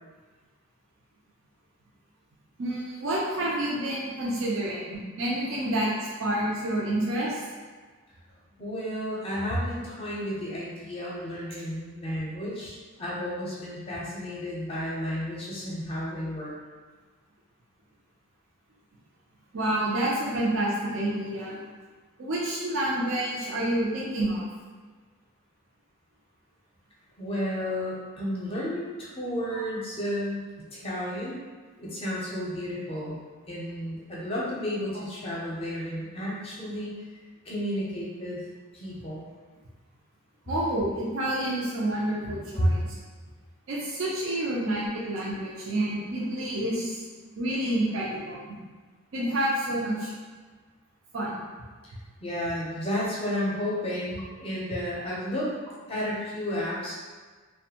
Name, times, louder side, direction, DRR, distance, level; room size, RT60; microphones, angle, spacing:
voice 1, 2.6-5.9 6.2-7.4 19.5-21.6 22.2-24.4 29.5-29.6 40.5-42.8 43.7-47.0 47.4-48.4 49.1-50.1 51.1-51.3, right 1 dB, 70° right, -5 dB, 0.5 m, -28 dB
voice 2, 8.6-16.5 23.4-23.6 27.2-31.4 31.8-33.2 33.5-37.0 37.4-38.4 38.7-39.3 42.6-42.7 46.7-46.8 51.8-51.9 52.2-55.5 55.9-57.0, equal, 25° left, -6 dB, 0.5 m, -32 dB
2.5 x 2.2 x 2.8 m, 1.4 s
head